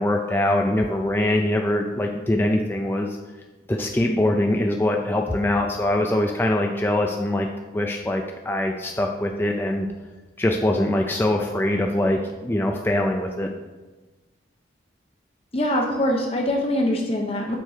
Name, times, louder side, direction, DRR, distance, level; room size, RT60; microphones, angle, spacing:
voice 1, 0.0-3.2 3.7-9.9 10.4-13.5, left 1 dB, 10° left, 2 dB, 0.4 m, -23 dB
voice 2, 15.5-17.6, left 1 dB, 30° left, 1 dB, 0.9 m, -23 dB
6.3 x 4.5 x 6.5 m, 1.2 s
head